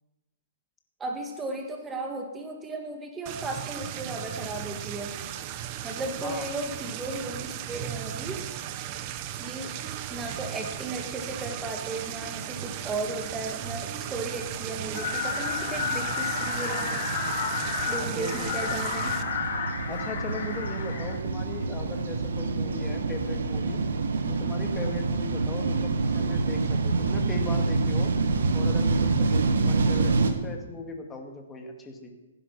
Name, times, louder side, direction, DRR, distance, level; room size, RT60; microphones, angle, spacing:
voice 1, 1.0-5.1 5.8-8.4 9.4-9.7 10.1-17.1 17.9-19.2, right 2 dB, 15° right, 2 dB, 2.2 m, -35 dB
sound 1, 3.3-19.2, right 11 dB, 35° right, 1.0 m, -36 dB
sound 2, 12.6-30.3, right 3 dB, 75° right, 1.7 m, -28 dB
sound 3, 14.9-21.1, left 5 dB, 50° left, 4.0 m, -31 dB
voice 2, 17.6-18.7 19.9-23.8 24.3-28.1 28.5-32.1, left 3 dB, 15° left, 2 dB, 2.2 m, -38 dB
15.5 x 9.9 x 6.2 m, 1.1 s
hypercardioid pair, 140°, 0 cm